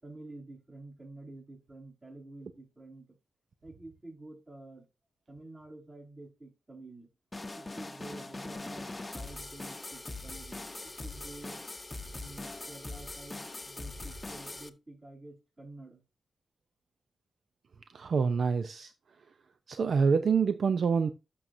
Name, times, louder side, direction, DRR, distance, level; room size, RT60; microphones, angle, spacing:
voice 1, 0.0-3.2 3.6-4.8 5.3-7.1 7.5-11.6 12.2-16.0, right 2 dB, 35° right, 5.0 m, -49 dB
sound 1, 7.3-14.7, left 2 dB, 25° left, 0.8 m, -42 dB
voice 2, 17.9-18.9 19.7-21.1, right 5 dB, 70° right, 0.5 m, -26 dB
12.5 x 6.2 x 2.6 m
cardioid pair, 70°, 0 cm